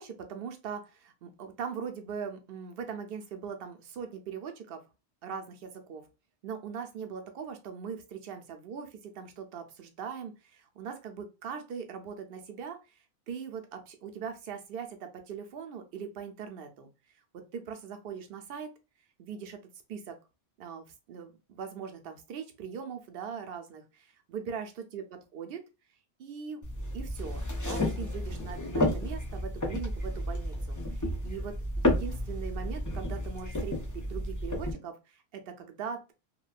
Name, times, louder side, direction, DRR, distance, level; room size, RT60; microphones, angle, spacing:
voice 1, 0.0-4.8 5.2-6.1 6.4-16.9 17.3-18.7 19.2-19.6 19.9-20.2 20.6-25.6 26.2-26.6 26.9-36.1, right 6 dB, 65° right, 5 dB, 0.7 m, -41 dB
sound 1, 26.6-34.7, left 1 dB, 30° left, 0.3 m, -32 dB
2.8 x 2.2 x 2.4 m, 0.28 s
omnidirectional pair, 1.1 m